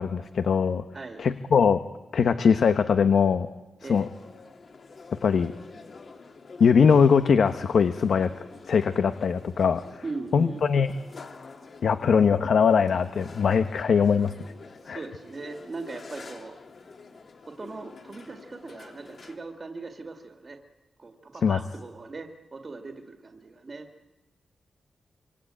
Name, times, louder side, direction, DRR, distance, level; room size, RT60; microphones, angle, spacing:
voice 1, 0.0-0.8 1.2-1.8 2.1-3.5 3.9-4.1 5.2-5.5 6.6-8.3 8.7-9.8 10.3-10.9 11.8-14.3 14.9-15.0 21.4-21.6, left 6 dB, 65° left, 9 dB, 1.0 m, -21 dB
sound 1, 3.9-19.4, left 4 dB, 45° left, 2.7 m, -47 dB
voice 2, 10.0-10.6 14.8-16.6 17.4-20.6 21.0-23.9, right 3 dB, 30° right, 4 dB, 2.1 m, -39 dB
26.0 x 25.0 x 8.9 m, 1.1 s
wide cardioid pair, 155°, 0 cm